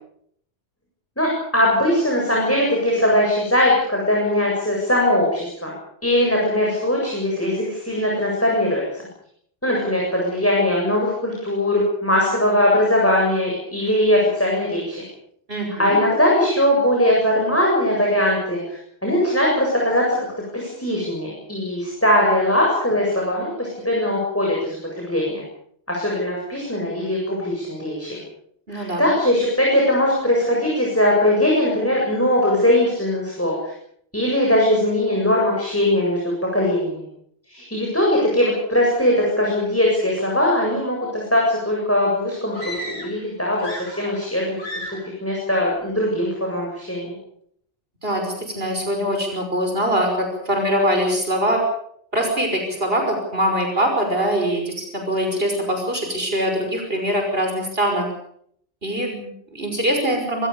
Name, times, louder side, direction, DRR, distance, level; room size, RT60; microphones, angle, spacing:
voice 1, 1.2-5.7 6.0-8.8 9.6-15.0 15.8-18.6 19.0-20.0 20.5-25.4 25.9-28.2 28.7-33.5 34.1-37.0 37.5-43.7 43.9-44.8 45.2-47.1, left 1 dB, 10° left, -3 dB, 7.7 m, -20 dB
voice 2, 15.5-16.0 28.7-29.1 48.0-51.6 52.1-58.1 58.8-60.5, equal, 65° right, 3 dB, 5.9 m, -23 dB
sound 1, 42.5-43.3 43.5-44.3 44.6-45.1, left 1 dB, 70° left, 7.2 m, -34 dB
26.5 x 20.0 x 7.0 m, 0.68 s
omnidirectional pair, 1.1 m